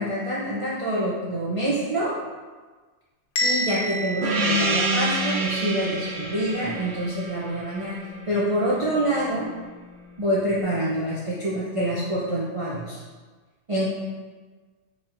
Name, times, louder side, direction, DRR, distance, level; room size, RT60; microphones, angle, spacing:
voice 1, 0.0-2.1 3.4-7.9 8.3-9.5 10.2-13.0 13.7-13.9, right 1 dB, 40° right, -8 dB, 0.5 m, -26 dB
Bell, 3.4-5.4, equal, 65° left, 0.7 m, -29 dB
Gong, 4.2-9.2, right 2 dB, 70° right, 0.8 m, -27 dB
4.7 x 2.8 x 2.6 m, 1.4 s
omnidirectional pair, 1.2 m